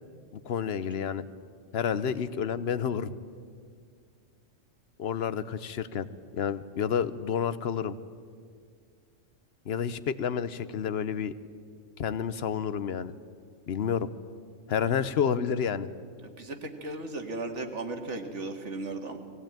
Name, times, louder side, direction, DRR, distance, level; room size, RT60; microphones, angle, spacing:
voice 1, 0.3-1.2 1.7-3.1 5.0-6.1 6.3-8.0 9.7-11.3 12.0-13.1 13.7-14.1 14.7-15.9, left 7 dB, 60° left, 14 dB, 0.9 m, -29 dB
voice 2, 16.2-19.2, right 2 dB, 65° right, 5 dB, 2.0 m, -36 dB
19.5 x 16.5 x 9.0 m, 2.1 s
omnidirectional pair, 1.3 m